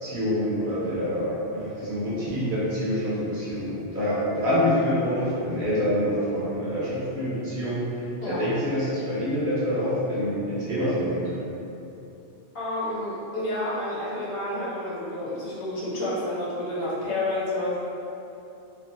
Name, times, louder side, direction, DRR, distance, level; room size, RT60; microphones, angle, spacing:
voice 1, 0.0-7.9 8.2-11.4, equal, 55° right, -9 dB, 0.8 m, -26 dB
voice 2, 12.5-17.8, left 1 dB, 65° left, -8 dB, 0.9 m, -29 dB
2.7 x 2.5 x 2.6 m, 2.8 s
omnidirectional pair, 1.2 m